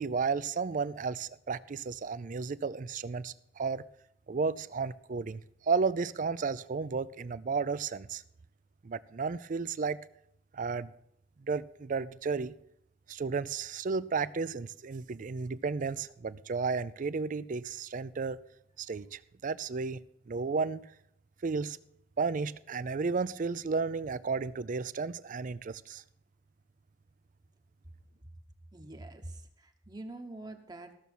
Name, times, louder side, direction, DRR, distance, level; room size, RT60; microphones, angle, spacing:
voice 1, 0.0-3.8 4.3-8.2 8.8-10.0 10.5-10.9 11.4-12.5 13.1-18.4 18.8-20.0 20.3-20.9 21.4-21.8 22.2-26.0, right 4 dB, 45° right, 17 dB, 0.4 m, -33 dB
voice 2, 28.7-30.9, right 2 dB, 25° right, 4 dB, 1.0 m, -45 dB
14.5 x 6.9 x 6.1 m, 0.74 s
head